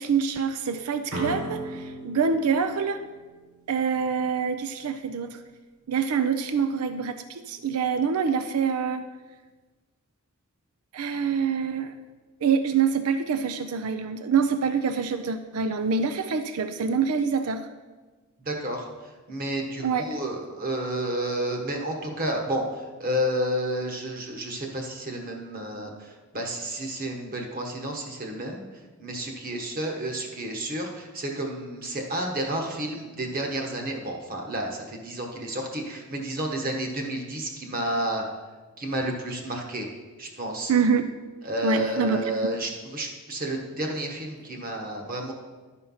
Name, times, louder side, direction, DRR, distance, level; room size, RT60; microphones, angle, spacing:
voice 1, 0.0-3.1 3.7-5.4 5.9-9.1 10.9-11.9 12.4-17.7 19.8-20.2 40.7-41.1 41.6-42.2, right 6 dB, 90° right, 10 dB, 0.5 m, -25 dB
sound 1, 1.1-4.0, right 1 dB, 65° right, 1.3 m, -37 dB
voice 2, 18.4-18.9 19.3-28.6 29.0-38.2 38.8-39.9 40.2-40.7 41.4-45.3, right 1 dB, 40° right, 2 dB, 1.2 m, -31 dB
11.5 x 4.5 x 5.5 m, 1.3 s
head